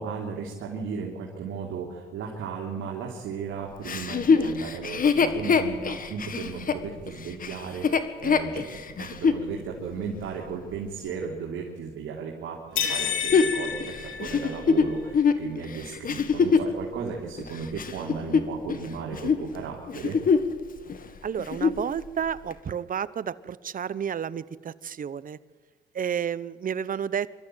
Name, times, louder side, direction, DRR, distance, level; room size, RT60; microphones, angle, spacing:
voice 1, 0.0-20.2, right 5 dB, 85° right, -2 dB, 3.1 m, -35 dB
Chuckle chortle, 3.8-9.4 10.0-10.1 12.8-16.8 17.4-18.9 19.1-19.4 19.9-20.6 20.9-21.0 21.4-21.9 22.5-22.6, left 5 dB, 45° left, 1.7 m, -24 dB
sound 1, 12.8-14.9, left 8 dB, 90° left, 2.4 m, -30 dB
voice 2, 21.2-25.4 25.9-27.4, right 8 dB, 45° right, 17 dB, 0.8 m, -31 dB
24.5 x 13.0 x 9.1 m, 1.6 s
cardioid pair, 90°, 20 cm